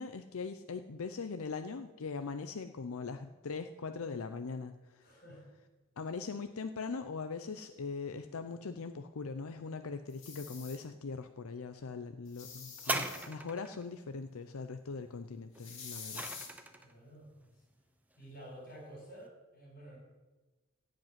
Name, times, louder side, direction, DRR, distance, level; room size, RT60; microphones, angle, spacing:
voice 1, 0.0-5.1 6.0-16.7, left 4 dB, 80° left, 9 dB, 0.6 m, -41 dB
voice 2, 5.0-5.5 16.8-17.5 18.2-20.0, right 1 dB, 45° left, 0 dB, 5.0 m, -51 dB
sound 1, 10.1-10.8 12.3-13.3 15.6-16.5, left 5 dB, 60° left, 2.6 m, -47 dB
sound 2, 12.8-13.8 15.5-16.9 17.7-17.8, right 2 dB, 5° right, 0.7 m, -38 dB
15.5 x 5.3 x 9.1 m, 1.2 s
head